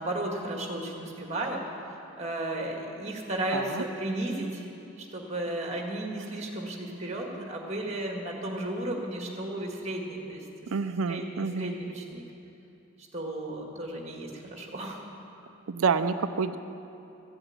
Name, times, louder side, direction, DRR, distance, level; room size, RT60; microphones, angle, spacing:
voice 1, 0.0-1.6 2.2-4.7 5.0-10.5 11.1-12.2 13.1-15.1, right 1 dB, 30° right, 1 dB, 1.7 m, -34 dB
voice 2, 3.5-3.8 10.7-11.7 15.7-16.6, right 5 dB, 70° right, 11 dB, 0.5 m, -28 dB
14.5 x 8.0 x 8.8 m, 2.8 s
head